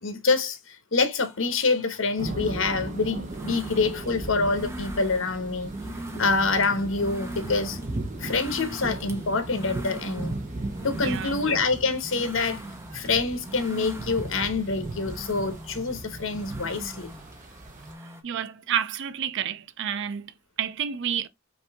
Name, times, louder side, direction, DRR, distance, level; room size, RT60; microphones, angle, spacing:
voice 1, 0.0-5.7 6.2-7.8 8.2-10.4 10.8-12.6 12.9-17.1, left 4 dB, 70° left, 1.0 m, -26 dB
sound 1, 1.3-18.2, right 1 dB, 15° right, 0.7 m, -42 dB
sound 2, 2.2-17.9, right 2 dB, 40° right, 1.0 m, -37 dB
voice 2, 10.9-11.5 12.9-13.0 18.2-21.3, right 9 dB, 60° right, 0.4 m, -30 dB
5.4 x 2.7 x 3.5 m
head